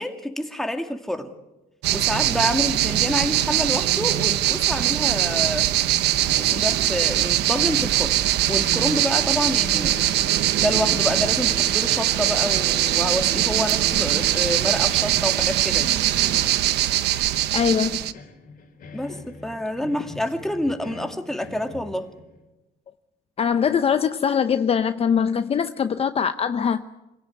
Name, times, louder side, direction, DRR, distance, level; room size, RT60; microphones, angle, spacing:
voice 1, 0.0-1.3 1.9-5.7 6.4-8.2 8.5-10.0 10.6-15.9 18.9-22.1, left 1 dB, ahead, 5 dB, 2.3 m, -28 dB
sound 1, 1.8-18.1, right 14 dB, 80° right, 1.0 m, -22 dB
sound 2, 6.0-8.2 8.4-22.4, left 4 dB, 55° left, 3.3 m, -41 dB
voice 2, 17.5-18.1 23.4-26.9, left 7 dB, 35° left, 10 dB, 0.8 m, -22 dB
26.0 x 16.5 x 9.4 m, 1.0 s
cardioid pair, 110°, 17 cm